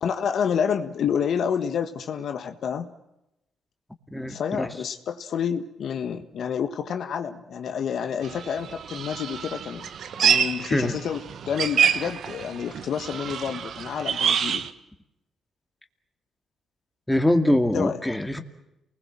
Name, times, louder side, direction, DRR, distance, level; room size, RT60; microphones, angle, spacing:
voice 1, 0.0-2.9 4.3-9.9 10.2-14.7 17.7-18.0, left 7 dB, 65° left, 8 dB, 1.6 m, -29 dB
voice 2, 4.1-4.7 10.7-11.0 17.1-18.4, left 1 dB, 5° left, 6 dB, 2.3 m, -23 dB
sound 1, 8.2-14.7, right 7 dB, 60° right, 1.4 m, -27 dB
28.5 x 20.5 x 7.6 m, 0.88 s
cardioid pair, 90°, 0 cm